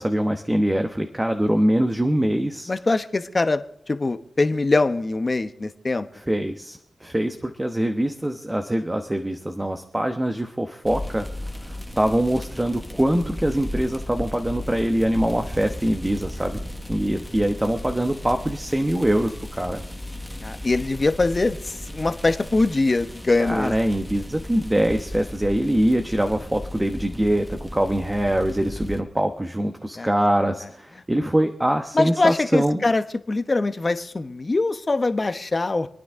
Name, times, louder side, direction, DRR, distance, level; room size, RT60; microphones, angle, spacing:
voice 1, 0.0-2.7 6.1-11.3 11.6-16.6 16.9-19.8 23.4-32.8, right 1 dB, 15° right, 5 dB, 1.1 m, -23 dB
voice 2, 2.7-6.1 20.4-23.7 30.0-30.1 31.9-35.9, left 3 dB, 35° left, 9 dB, 1.0 m, -23 dB
sound 1, 10.8-29.0, left 1 dB, 5° left, 1.4 m, -35 dB
27.5 x 9.4 x 3.7 m, 0.75 s
cardioid pair, 55°, 0 cm